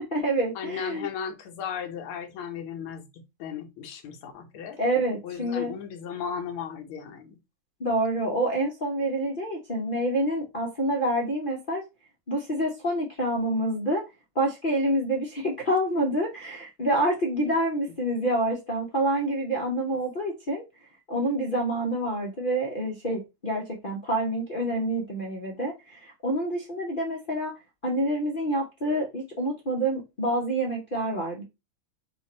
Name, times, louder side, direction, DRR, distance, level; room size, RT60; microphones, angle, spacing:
voice 1, 0.0-1.1 4.8-5.7 7.8-11.8 12.3-14.0 14.3-20.6 21.1-27.5 27.8-31.4, right 1 dB, 50° left, 0.6 m, -27 dB
voice 2, 0.5-4.8 5.2-7.4 17.5-17.6, left 7 dB, 90° left, 1.7 m, -36 dB
4.5 x 2.6 x 4.1 m
omnidirectional pair, 2.3 m